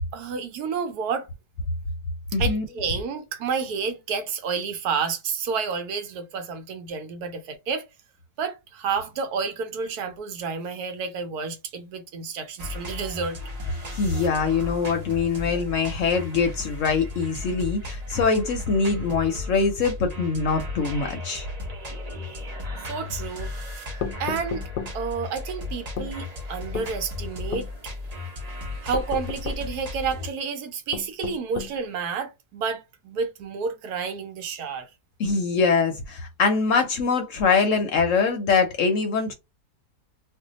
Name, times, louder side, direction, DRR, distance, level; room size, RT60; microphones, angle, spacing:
voice 1, 0.1-1.3 2.4-7.8 8.4-13.4 22.9-23.5 24.2-24.7 24.9-27.7 28.8-34.9, right 5 dB, 75° right, 1.1 m, -30 dB
voice 2, 2.3-2.6 13.9-21.5 35.2-39.3, left 4 dB, 65° left, 0.8 m, -23 dB
sound 1, 12.6-30.3, left 2 dB, 55° right, 0.4 m, -35 dB
sound 2, 24.0-25.0 26.0-26.1 26.7-26.9 27.5-27.7 28.9-29.7 30.9-31.8, left 7 dB, 90° left, 1.2 m, -32 dB
2.6 x 2.2 x 3.7 m
omnidirectional pair, 1.7 m